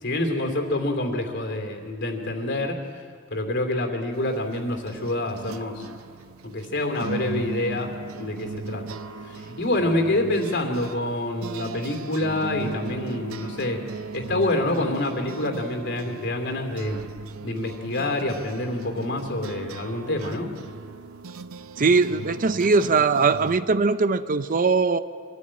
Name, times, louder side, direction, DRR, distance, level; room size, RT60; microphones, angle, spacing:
voice 1, 0.0-2.8 3.3-5.8 6.4-7.9 8.2-8.8 9.2-13.8 14.1-17.0 17.4-20.5, left 1 dB, 55° left, 4 dB, 2.8 m, -27 dB
sound 1, 4.1-23.6, right 4 dB, 90° right, 0.7 m, -38 dB
voice 2, 21.8-25.0, right 4 dB, 40° right, 13 dB, 0.6 m, -20 dB
24.0 x 14.0 x 8.9 m, 2.1 s
head